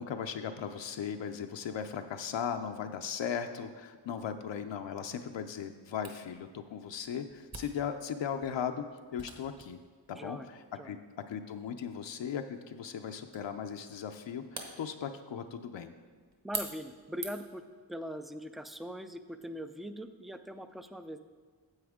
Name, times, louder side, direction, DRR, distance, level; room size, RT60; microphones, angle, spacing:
voice 1, 0.0-8.8 9.1-9.8 10.1-11.0 11.3-15.9, left 7 dB, 75° left, 6 dB, 0.6 m, -37 dB
Camera, 6.0-17.6, right 2 dB, 35° right, 1.3 m, -47 dB
voice 2, 10.2-10.5 10.8-11.0 16.4-17.6 17.9-21.2, equal, ahead, 9 dB, 0.3 m, -41 dB
9.7 x 7.7 x 3.6 m, 1.5 s
wide cardioid pair, 90°, 45 cm